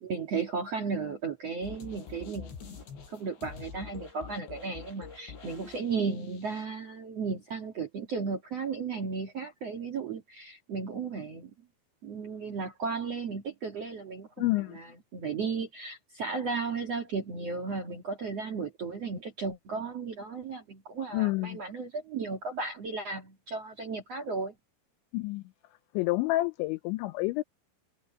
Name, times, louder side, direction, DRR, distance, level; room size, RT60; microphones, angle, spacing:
voice 1, 0.0-2.6 3.1-11.5 12.0-24.5, right 4 dB, 55° right, 1.9 m, -35 dB
sound 1, 1.6-6.6, left 6 dB, 65° left, 7.5 m, -46 dB
voice 2, 14.4-14.8 21.1-21.6 25.1-25.4 25.9-27.4, left 19 dB, 85° left, 2.7 m, -28 dB
omnidirectional pair, 5.6 m